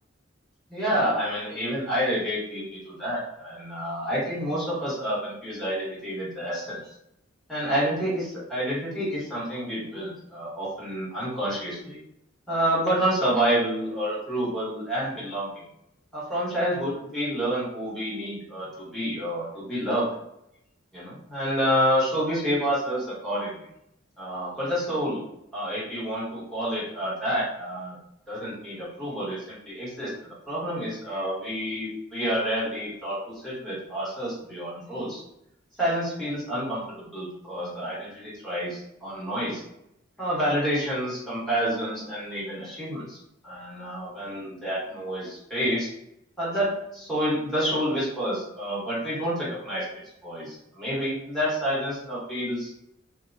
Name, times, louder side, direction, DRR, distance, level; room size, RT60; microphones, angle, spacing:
voice 1, 0.7-6.9 7.5-12.0 12.5-15.7 16.1-20.1 20.9-23.7 24.2-25.2 25.5-28.0 28.3-35.2 35.8-39.6 40.2-45.9 46.4-49.8 50.2-52.7, equal, ahead, -9 dB, 1.2 m, -28 dB
2.8 x 2.2 x 2.5 m, 0.79 s
head